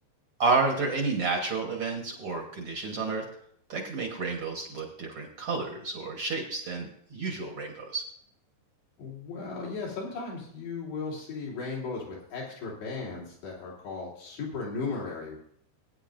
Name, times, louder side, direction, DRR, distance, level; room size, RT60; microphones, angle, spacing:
voice 1, 0.4-3.2 3.7-8.0, right 3 dB, 65° right, 1 dB, 1.4 m, -30 dB
voice 2, 9.0-15.4, left 4 dB, 85° left, -5 dB, 5.2 m, -36 dB
20.0 x 9.5 x 2.6 m, 0.67 s
omnidirectional pair, 4.5 m